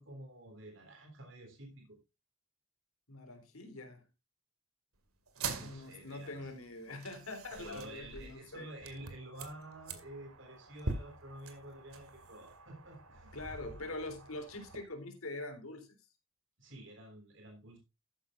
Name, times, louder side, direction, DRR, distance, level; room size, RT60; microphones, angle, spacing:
voice 1, 0.0-2.0 5.4-6.5 7.5-13.3 16.6-17.8, right 1 dB, 55° right, 3 dB, 3.3 m, -50 dB
voice 2, 3.1-4.0 5.6-8.7 13.3-16.0, left 2 dB, 80° left, 6 dB, 3.7 m, -44 dB
sound 1, 5.3-14.8, right 3 dB, 85° right, 2.2 m, -45 dB
13.5 x 10.0 x 2.5 m, 0.25 s
head